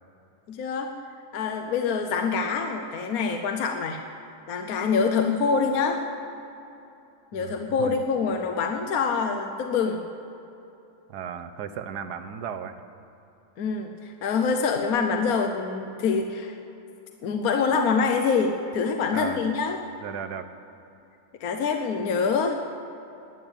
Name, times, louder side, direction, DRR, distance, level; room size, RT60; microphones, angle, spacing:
voice 1, 0.5-0.9 1.3-4.0 4.5-6.0 7.3-10.0 13.6-16.6 17.2-19.8 21.4-22.5, left 5 dB, 65° left, 5 dB, 1.2 m, -25 dB
voice 2, 7.3-8.0 11.1-12.7 19.1-19.4 20.0-20.5, right 8 dB, 85° right, 8 dB, 1.4 m, -35 dB
13.0 x 9.2 x 8.9 m, 2.8 s
omnidirectional pair, 1.7 m